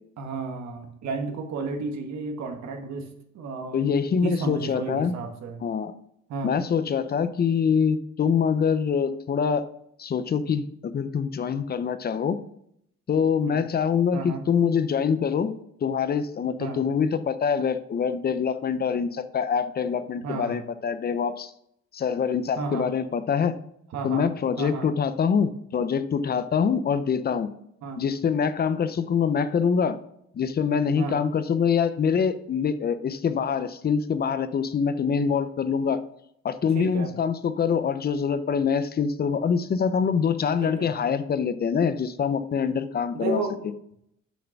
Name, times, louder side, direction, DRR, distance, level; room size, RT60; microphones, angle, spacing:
voice 1, 0.2-3.1 3.3-3.9 4.2-5.6 6.3-6.6 13.4-13.6 14.1-14.4 16.6-16.8 20.2-20.6 22.6-22.9 23.9-24.3 24.6-24.9 27.8-28.0 31.0-31.2 36.7-37.1 40.6-40.9 43.1-43.6, right 4 dB, 70° right, 4 dB, 1.6 m, -32 dB
voice 2, 3.7-5.2 5.6-5.9 6.4-9.6 10.0-12.4 13.1-15.5 15.8-21.5 21.9-23.6 24.0-27.5 28.0-30.0 30.3-36.0 36.4-43.4, left 6 dB, 35° left, 12 dB, 0.6 m, -25 dB
6.8 x 6.4 x 5.9 m, 0.74 s
cardioid pair, 125°, 29 cm